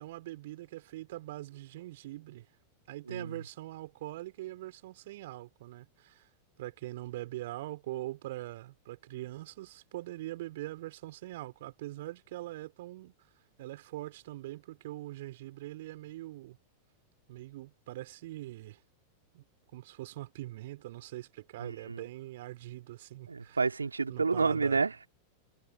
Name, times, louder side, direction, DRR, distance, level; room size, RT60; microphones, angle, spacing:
voice 1, 0.0-2.5 2.9-6.3 6.6-13.1 13.6-16.6 17.3-18.8 19.3-19.4 19.7-23.6 24.1-24.8, right 16 dB, 55° right, 6.7 m, -42 dB
voice 2, 21.6-22.0 23.3-25.1, right 4 dB, 75° right, 3.3 m, -30 dB
figure-of-eight pair, 90°, 0 cm